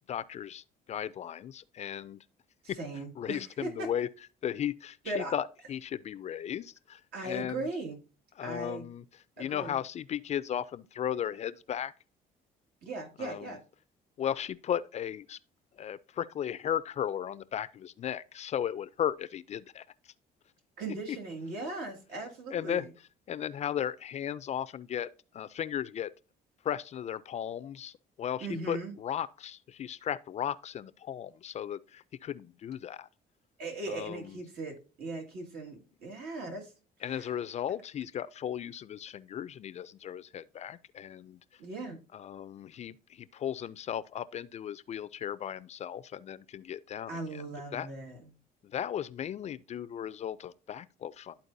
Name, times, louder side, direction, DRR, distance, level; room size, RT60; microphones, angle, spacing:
voice 1, 0.1-2.2 2.7-2.8 3.2-4.1 4.4-7.7 8.4-9.0 9.4-11.9 13.2-13.5 14.2-15.4 15.8-19.8 21.1-21.2 22.5-22.9 23.3-26.1 26.6-33.1 33.9-34.3 37.0-41.6 42.1-47.4 47.7-47.9 48.6-51.4, left 9 dB, 40° left, 0.4 m, -36 dB
voice 2, 2.8-3.9 5.1-5.3 7.1-8.0 8.4-8.9 9.4-9.8 12.8-13.6 20.8-22.9 28.4-28.9 33.6-36.7 37.0-37.3 41.6-42.0 47.1-48.4, right 2 dB, 70° right, 2.0 m, -38 dB
12.5 x 4.4 x 2.6 m
cardioid pair, 110°, 17 cm